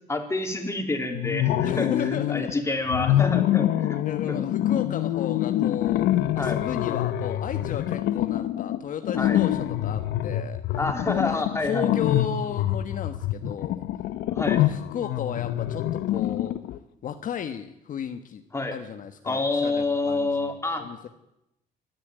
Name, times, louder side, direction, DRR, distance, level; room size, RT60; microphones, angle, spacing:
voice 1, 0.1-4.0 4.3-4.4 6.4-6.6 9.2-9.4 10.8-11.9 14.3-14.6 18.5-18.8 19.3-20.8, left 2 dB, 15° left, 4 dB, 3.9 m, -28 dB
sound 1, 1.1-2.5 2.9-16.8, left 12 dB, 80° left, 1.2 m, -26 dB
voice 2, 1.6-2.6 3.3-3.5 4.0-10.6 11.1-13.8 14.4-16.6 17.0-18.4 18.7-20.3 20.8-21.1, left 8 dB, 50° left, 8 dB, 1.4 m, -34 dB
25.0 x 13.0 x 9.2 m, 0.88 s
cardioid pair, 110°, 17 cm